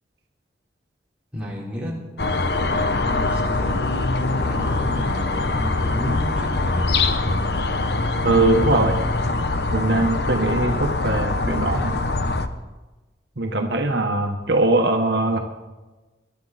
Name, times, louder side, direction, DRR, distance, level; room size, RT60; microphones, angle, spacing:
voice 1, 1.3-2.0 2.6-3.8 4.4-7.0, equal, 5° right, -5 dB, 3.8 m, -32 dB
sound 1, 2.2-12.5, left 2 dB, 65° left, 0.9 m, -23 dB
voice 2, 8.2-9.0 9.7-12.0 13.4-15.4, right 2 dB, 75° right, 3 dB, 1.3 m, -21 dB
22.0 x 11.5 x 4.2 m, 1.2 s
head